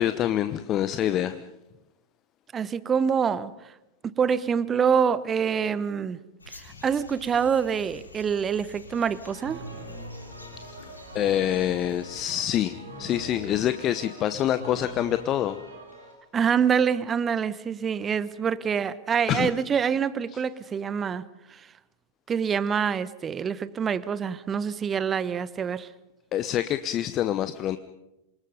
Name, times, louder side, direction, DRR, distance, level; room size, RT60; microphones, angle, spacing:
voice 1, 0.0-1.4 11.1-15.6 19.3-19.5 26.3-27.8, left 11 dB, 30° left, 11 dB, 0.9 m, -26 dB
voice 2, 2.5-3.5 4.0-6.2 6.5-9.6 16.3-21.2 21.5-21.7 22.3-25.9, right 7 dB, 20° right, 17 dB, 1.0 m, -26 dB
sound 1, 6.4-12.2, left 3 dB, 80° left, 3.9 m, -48 dB
sound 2, 8.9-16.1, right 2 dB, 80° right, 6.6 m, -43 dB
27.5 x 24.0 x 5.4 m, 0.94 s
figure-of-eight pair, 90°, 0 cm